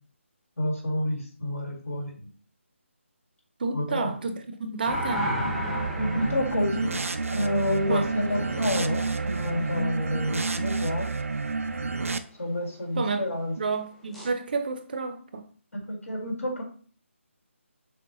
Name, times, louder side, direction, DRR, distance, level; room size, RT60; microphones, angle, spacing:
voice 1, 0.6-2.3 3.7-4.1 6.0-7.0 7.3-11.1 12.4-13.5 15.9-16.6, left 1 dB, 80° left, -1 dB, 2.0 m, -29 dB
voice 2, 3.6-5.3 7.9-8.0 12.9-13.3 13.6-15.4, right 4 dB, 45° right, 7 dB, 0.6 m, -30 dB
sound 1, 4.9-10.7 14.1-14.3, equal, ahead, 0.7 m, -35 dB
sound 2, 5.4-12.2, right 4 dB, 85° right, 0.4 m, -30 dB
6.2 x 2.2 x 3.0 m, 0.42 s
figure-of-eight pair, 160°, 7 cm